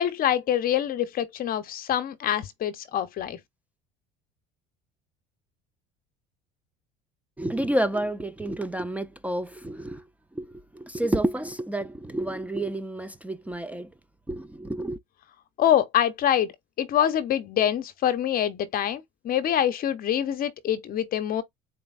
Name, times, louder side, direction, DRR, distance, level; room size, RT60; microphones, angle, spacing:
voice 1, 0.0-3.4 15.6-16.5 16.8-21.4, left 10 dB, 50° left, 0.8 m, -25 dB
voice 2, 7.4-10.0 10.4-13.9 14.3-15.0, right 1 dB, 5° right, 0.4 m, -29 dB
4.1 x 3.3 x 2.4 m
supercardioid pair, 95°, 20 cm